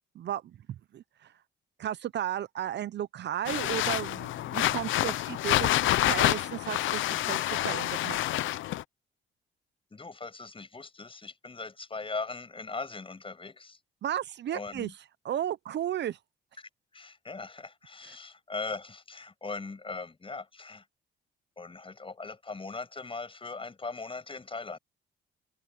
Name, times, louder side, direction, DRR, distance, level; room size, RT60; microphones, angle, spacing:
voice 1, 0.9-1.3 1.8-8.2 14.0-14.9 15.2-16.2, right 11 dB, 60° right, 0.8 m, -34 dB
sound 1, 3.4-8.8, left 15 dB, 80° left, 0.7 m, -28 dB
voice 2, 9.9-13.8 14.5-14.9 16.6-20.8 21.6-24.8, left 3 dB, 25° left, 7.6 m, -40 dB
open air
cardioid pair, 90°, 20 cm